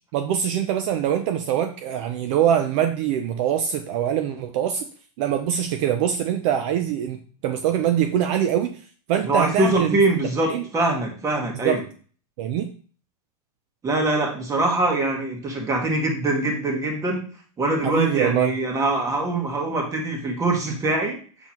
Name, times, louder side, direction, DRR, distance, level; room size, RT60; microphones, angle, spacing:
voice 1, 0.1-4.9 5.2-8.8 9.1-10.0 10.5-10.6 11.6-11.8 12.4-12.7 17.8-18.5, right 10 dB, 55° right, 6 dB, 0.6 m, -23 dB
voice 2, 9.2-11.8 13.8-17.2 17.6-21.2, right 2 dB, 15° right, 2 dB, 1.4 m, -23 dB
6.1 x 5.6 x 3.0 m, 0.41 s
supercardioid pair, 150°, 19 cm